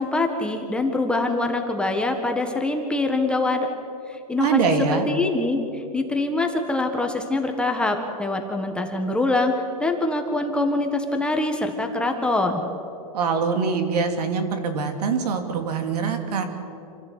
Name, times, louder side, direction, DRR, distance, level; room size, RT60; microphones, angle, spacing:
voice 1, 0.0-3.7 4.1-12.6, left 2 dB, 5° left, 3 dB, 1.6 m, -24 dB
voice 2, 4.4-5.1 13.1-16.4, right 5 dB, 70° right, 6 dB, 3.1 m, -23 dB
27.0 x 15.5 x 8.3 m, 2.8 s
supercardioid pair, 145°, 20 cm